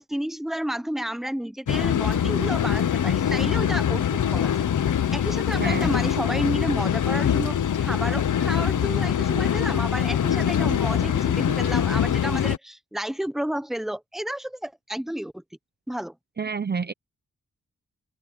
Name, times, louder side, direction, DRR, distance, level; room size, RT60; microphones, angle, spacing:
voice 1, 0.0-4.5 5.1-15.4 15.9-16.1, equal, ahead, 1.0 m, -31 dB
sound 1, 1.7-12.6, left 9 dB, 80° left, 1.0 m, -23 dB
voice 2, 5.6-5.9 16.4-16.9, right 5 dB, 35° right, 0.7 m, -28 dB
open air
wide cardioid pair, 130°, 30 cm